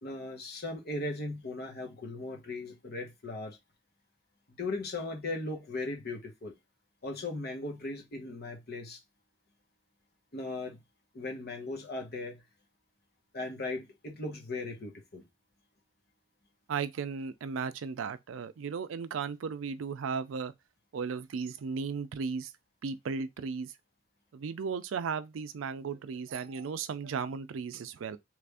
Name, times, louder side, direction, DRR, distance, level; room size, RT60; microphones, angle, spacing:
voice 1, 0.0-3.6 4.5-6.5 7.0-9.0 10.3-10.8 11.1-12.4 13.3-15.3, left 2 dB, 55° left, 1.1 m, -38 dB
voice 2, 16.7-20.5 20.9-22.5 22.8-23.7 24.3-28.2, right 5 dB, 85° right, 0.4 m, -35 dB
3.2 x 2.5 x 3.4 m
head